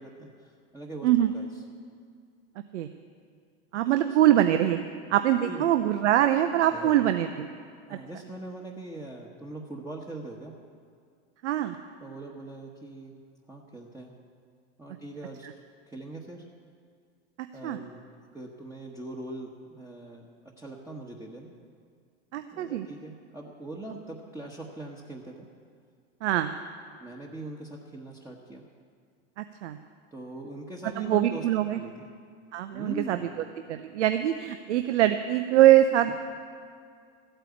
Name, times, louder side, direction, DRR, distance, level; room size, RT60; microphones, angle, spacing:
voice 1, 0.0-1.1 1.3-1.6 3.8-4.2 5.4-5.9 6.7-7.0 7.9-10.6 12.0-13.2 13.5-14.1 14.8-15.5 15.9-16.4 17.5-18.0 18.3-21.5 22.5-25.4 27.0-28.6 30.1-32.1 32.7-33.3, right 2 dB, 10° right, -2 dB, 1.2 m, -41 dB
voice 2, 3.7-4.8 5.1-7.3 7.9-8.0 11.4-11.8 17.4-17.8 22.3-22.9 26.2-26.5 29.4-29.8 31.0-31.8 32.5-33.2 33.7-36.1, right 12 dB, 85° right, 8 dB, 0.7 m, -23 dB
14.0 x 9.0 x 8.3 m, 2.2 s
supercardioid pair, 120°, 34 cm